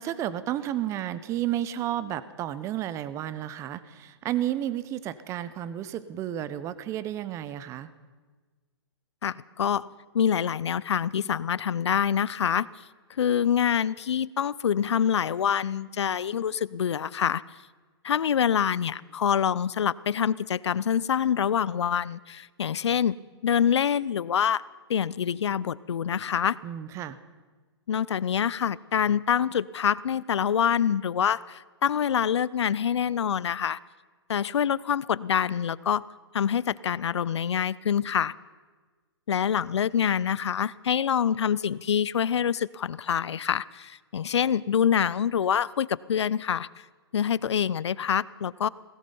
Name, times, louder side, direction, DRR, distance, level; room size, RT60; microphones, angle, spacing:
voice 1, 0.0-7.9 26.6-27.2, right 12 dB, 20° right, 15 dB, 0.6 m, -32 dB
voice 2, 9.2-9.9 10.1-12.7 13.2-17.4 18.0-23.2 23.4-24.6 24.9-26.6 27.9-33.8 34.3-36.1 36.3-38.3 39.3-46.7 47.1-48.7, left 8 dB, 85° left, 21 dB, 0.5 m, -26 dB
17.0 x 15.5 x 5.4 m, 1.4 s
hypercardioid pair, 140°, 14 cm